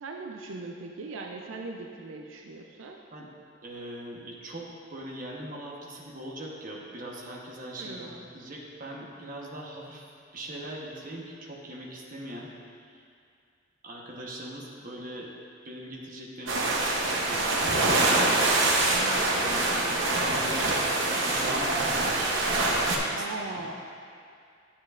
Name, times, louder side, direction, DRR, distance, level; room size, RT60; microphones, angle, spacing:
voice 1, 0.0-3.0 7.8-8.3 18.8-19.2 23.1-23.7, right 3 dB, 90° right, 1 dB, 0.5 m, -39 dB
voice 2, 3.6-12.5 12.9-13.0 13.8-15.3 15.6-18.9 19.1-20.8 21.1-22.4 22.7-23.2 23.5-23.7, right 1 dB, 45° right, -2 dB, 1.1 m, -41 dB
sound 1, 16.5-23.0, right 2 dB, 75° right, 0.9 m, -25 dB
10.5 x 7.4 x 2.5 m, 2.3 s
head